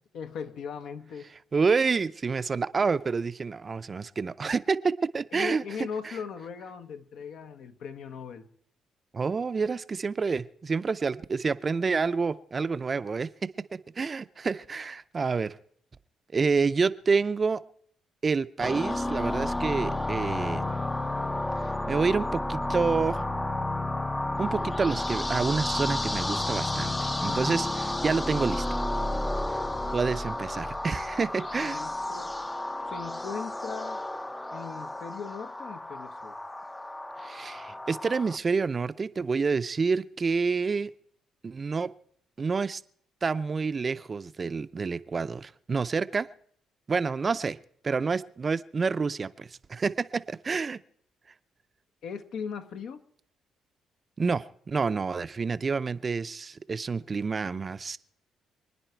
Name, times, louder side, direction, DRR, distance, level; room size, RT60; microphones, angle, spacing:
voice 1, 0.1-1.3 5.3-8.5 31.6-32.4 32.9-34.0 34.5-36.4 52.0-53.0, left 6 dB, 75° left, 8 dB, 1.3 m, -39 dB
voice 2, 1.5-5.9 9.1-13.3 14.0-15.6 16.3-17.6 18.2-20.7 21.9-23.2 24.4-27.0 27.2-28.6 29.9-31.8 37.2-40.9 41.4-41.9 42.4-42.8 43.2-46.3 46.9-47.6 47.8-50.8 54.2-58.0, right 4 dB, 35° right, 13 dB, 0.6 m, -28 dB
sound 1, 18.6-38.4, left 1 dB, 15° left, 0.6 m, -31 dB
26.5 x 9.9 x 4.5 m, 0.65 s
cardioid pair, 100°, 0 cm